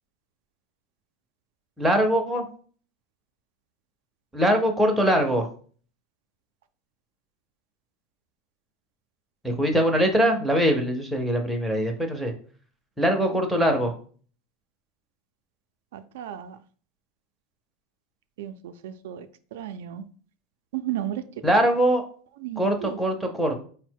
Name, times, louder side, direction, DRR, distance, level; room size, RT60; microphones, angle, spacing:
voice 1, 1.8-2.4 4.3-5.5 9.4-12.3 13.0-13.9 21.4-22.0 22.6-23.5, equal, 5° right, 0.5 m, -22 dB
voice 2, 15.9-16.6 18.4-19.3 19.5-20.0 20.7-21.2 22.4-23.0, right 11 dB, 90° right, 0.3 m, -34 dB
4.0 x 2.1 x 4.4 m
supercardioid pair, 170°, 0 cm